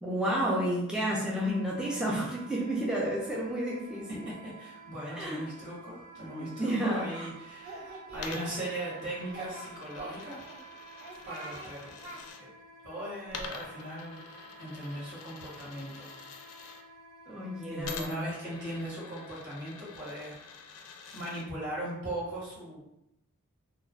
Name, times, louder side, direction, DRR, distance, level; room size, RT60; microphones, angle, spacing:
voice 1, 0.0-4.2 5.1-5.4 6.3-7.1 17.3-18.2, right 1 dB, 5° right, -5 dB, 0.4 m, -31 dB
Wind instrument woodwind instrument, 1.3-18.1, right 4 dB, 30° right, 0.8 m, -52 dB
voice 2, 4.2-10.4 11.2-12.5 12.8-16.1 17.7-20.4 21.1-22.8, right 1 dB, 55° right, -7 dB, 1.2 m, -39 dB
Singing, 6.6-7.3 7.6-9.0 9.3-10.6 11.0-11.7 12.0-12.2, right 2 dB, 85° right, 0.8 m, -44 dB
Coin (dropping), 8.1-12.4 13.3-16.8 17.8-21.5, left 5 dB, 90° left, 0.4 m, -46 dB
2.3 x 2.1 x 3.4 m, 0.84 s
head